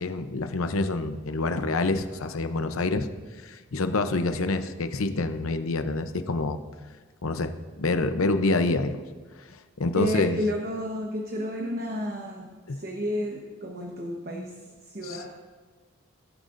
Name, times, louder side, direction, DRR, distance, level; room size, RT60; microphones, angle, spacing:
voice 1, 0.0-3.1 3.4-6.6 7.2-9.0 9.8-10.4 12.7-12.8 15.0-15.2, left 2 dB, 90° left, 8 dB, 0.8 m, -27 dB
voice 2, 9.9-12.5 12.8-14.5 14.9-15.4, equal, 45° right, 0 dB, 1.2 m, -31 dB
21.0 x 11.5 x 2.6 m, 1.4 s
head